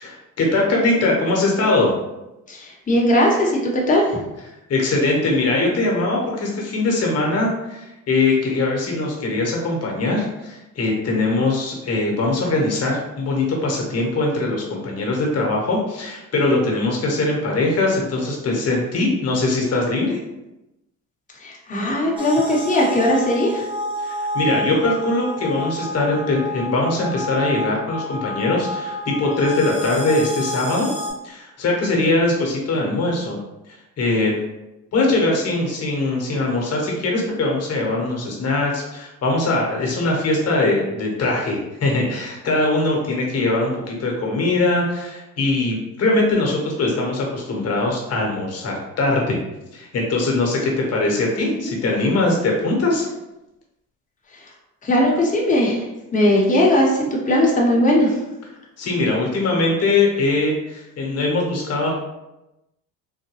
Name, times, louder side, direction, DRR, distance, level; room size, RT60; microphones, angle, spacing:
voice 1, 0.0-1.9 4.7-20.2 24.0-30.9 31.2-33.4 34.0-34.3 34.9-49.4 49.7-53.0 58.8-62.0, left 2 dB, 45° left, -1 dB, 1.0 m, -21 dB
voice 2, 2.5-4.2 21.4-23.6 51.4-51.7 54.8-55.8 56.1-58.2, left 1 dB, 20° left, -3 dB, 0.9 m, -18 dB
sound 1, 22.2-31.1, left 1 dB, 15° right, 0.8 m, -29 dB
3.9 x 2.1 x 3.0 m, 0.96 s
cardioid pair, 100°, 34 cm